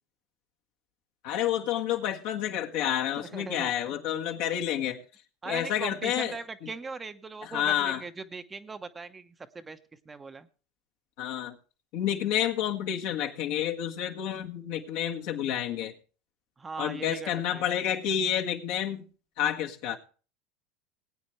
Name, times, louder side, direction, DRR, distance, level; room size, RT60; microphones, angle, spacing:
voice 1, 1.2-5.0 5.4-6.3 6.6-6.7 7.4-8.0 11.2-11.6 11.9-15.9 16.8-19.1 19.4-20.0, left 10 dB, 65° left, 2 dB, 1.7 m, -29 dB
voice 2, 3.2-3.9 5.4-9.8 10.1-10.5 16.6-17.3 17.5-17.6, right 4 dB, 20° right, 9 dB, 1.0 m, -39 dB
20.0 x 8.9 x 3.2 m, 0.37 s
hypercardioid pair, 85°, 0 cm